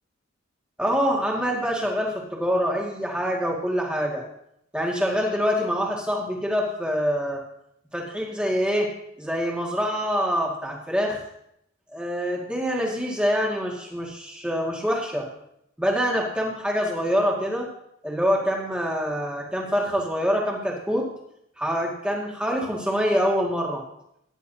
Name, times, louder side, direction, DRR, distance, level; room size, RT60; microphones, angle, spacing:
voice 1, 0.8-4.2 4.7-7.4 7.9-8.9 9.2-11.2 11.9-15.3 15.8-17.7 18.0-21.0 21.6-23.8, equal, 5° right, -2 dB, 2.0 m, -25 dB
16.5 x 10.5 x 2.8 m, 0.77 s
head